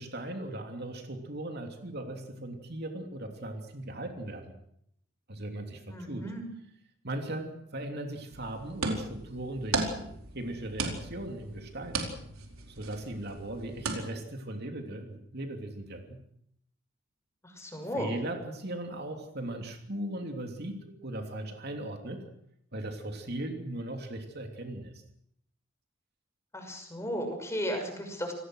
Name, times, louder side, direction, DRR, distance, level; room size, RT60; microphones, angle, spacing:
voice 1, 0.0-4.6 5.3-6.3 7.0-10.1 10.3-12.1 12.7-16.2 18.0-22.3 22.7-25.0, right 1 dB, 50° right, 4 dB, 3.0 m, -38 dB
voice 2, 5.9-6.4 17.4-18.1 26.5-28.3, equal, 15° left, 4 dB, 6.1 m, -35 dB
sound 1, 8.3-14.0, right 3 dB, 85° right, 4.5 m, -36 dB
28.0 x 19.0 x 6.4 m, 0.71 s
head